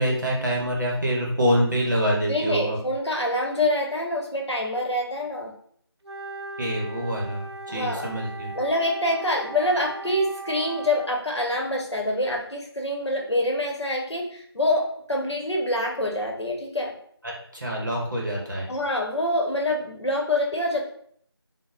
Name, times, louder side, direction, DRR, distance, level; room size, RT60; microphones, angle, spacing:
voice 1, 0.0-2.8 6.6-7.4 7.7-8.5 17.2-18.7, equal, 45° right, -3 dB, 0.7 m, -25 dB
voice 2, 2.3-5.5 7.7-8.1 8.5-16.9 18.7-20.9, left 1 dB, 90° left, 1 dB, 0.8 m, -26 dB
Wind instrument woodwind instrument, 6.0-11.2, right 3 dB, 70° right, 0.4 m, -38 dB
2.2 x 2.0 x 3.4 m, 0.62 s
figure-of-eight pair, 175°, 14 cm